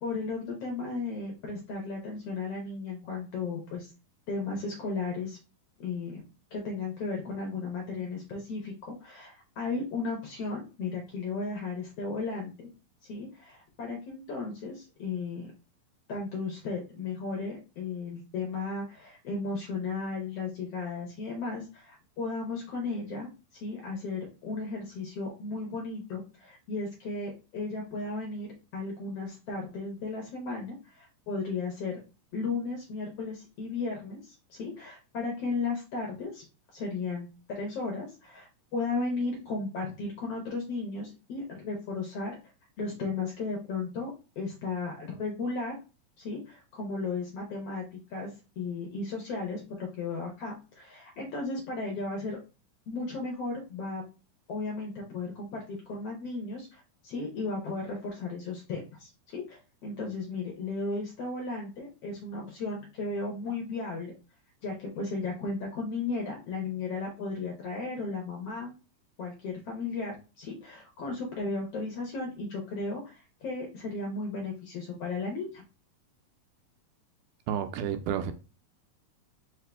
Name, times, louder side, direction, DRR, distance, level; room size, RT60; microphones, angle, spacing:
voice 1, 0.0-3.9 4.3-5.4 5.8-6.2 6.5-12.7 13.1-15.5 16.1-23.3 23.6-32.0 32.3-36.4 36.7-42.4 42.8-44.1 44.4-45.7 46.2-48.3 48.6-52.4 52.9-54.0 54.5-64.1 64.6-68.8 69.2-73.2 73.4-75.6, left 3 dB, 65° left, 1.6 m, -35 dB
voice 2, 77.5-78.3, right 9 dB, 80° right, 2.0 m, -30 dB
4.9 x 2.8 x 3.4 m
omnidirectional pair, 3.8 m